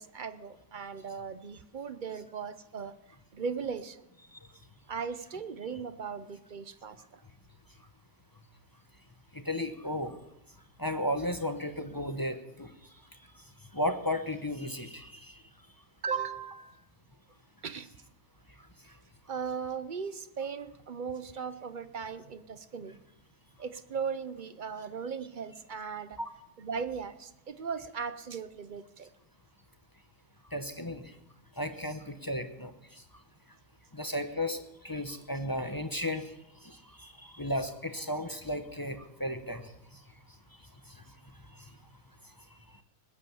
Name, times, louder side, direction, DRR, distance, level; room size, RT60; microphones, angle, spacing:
voice 1, 0.0-3.0 3.3-4.0 4.9-7.2 16.0-16.8 17.6-17.9 19.3-23.0 23.6-26.2 26.6-29.1, right 6 dB, 45° right, 12 dB, 0.6 m, -38 dB
voice 2, 9.3-10.2 10.8-15.4 18.5-19.0 26.2-26.3 30.5-31.2 31.5-33.0 33.9-40.0 40.3-41.8 42.2-42.8, left 1 dB, 20° left, 8 dB, 0.7 m, -36 dB
20.0 x 8.7 x 7.1 m, 0.87 s
omnidirectional pair, 1.6 m